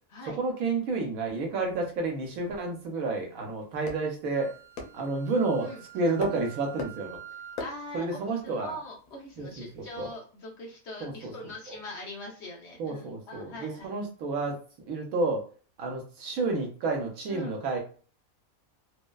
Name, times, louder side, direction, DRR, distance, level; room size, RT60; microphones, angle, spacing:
voice 1, 0.4-4.5 4.9-5.7 5.9-7.2 7.9-8.7 9.4-10.1 11.0-11.3 12.8-15.4 15.8-17.8, right 3 dB, 75° right, 2 dB, 1.1 m, -30 dB
sound 1, 1.3-10.2, left 3 dB, 85° left, 1.2 m, -45 dB
Wind instrument woodwind instrument, 4.3-7.7, right 11 dB, 55° right, 1.0 m, -48 dB
voice 2, 7.6-13.9 17.3-17.6, left 1 dB, 55° left, -1 dB, 0.9 m, -42 dB
3.1 x 2.1 x 2.2 m, 0.39 s
omnidirectional pair, 1.5 m